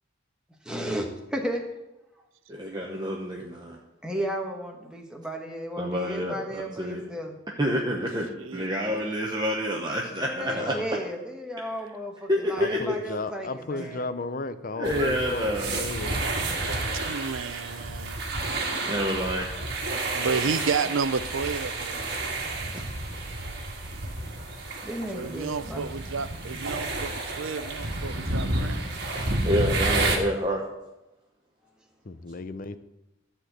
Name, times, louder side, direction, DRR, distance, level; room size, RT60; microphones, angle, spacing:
voice 1, 0.7-1.0 1.3-1.6 4.0-7.4 10.2-14.0 20.2-20.6 24.8-25.8, equal, 5° right, 1 dB, 1.3 m, -34 dB
voice 2, 2.5-3.8 5.8-7.0 7.6-10.7 12.3-13.0 13.8-13.9 14.7-15.8 18.8-19.5 22.4-22.5 22.7-22.8 29.4-30.7, equal, 20° right, -1 dB, 0.9 m, -28 dB
voice 3, 8.0-8.3 10.4-10.9 12.6-16.2 32.0-32.8, left 3 dB, 45° left, 12 dB, 0.6 m, -35 dB
sound 1, 14.8-30.2, right 2 dB, 55° right, 1.7 m, -30 dB
voice 4, 16.9-18.2 20.1-22.0 25.1-28.8, right 5 dB, 75° right, 13 dB, 0.6 m, -31 dB
13.0 x 4.5 x 7.9 m, 0.94 s
head